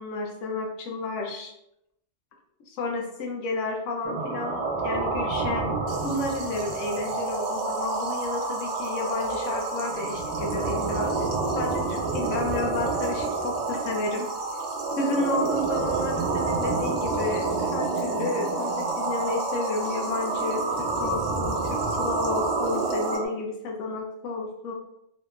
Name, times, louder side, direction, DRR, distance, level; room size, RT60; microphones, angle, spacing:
voice 1, 0.0-1.5 2.7-5.7 6.0-11.1 11.5-14.3 15.0-24.7, left 3 dB, 90° left, 1 dB, 1.0 m, -31 dB
sound 1, 4.0-23.3, right 3 dB, 75° right, 0.9 m, -28 dB
sound 2, 5.9-23.2, right 2 dB, 55° right, 0.5 m, -44 dB
2.8 x 2.3 x 2.3 m, 0.80 s
omnidirectional pair, 1.2 m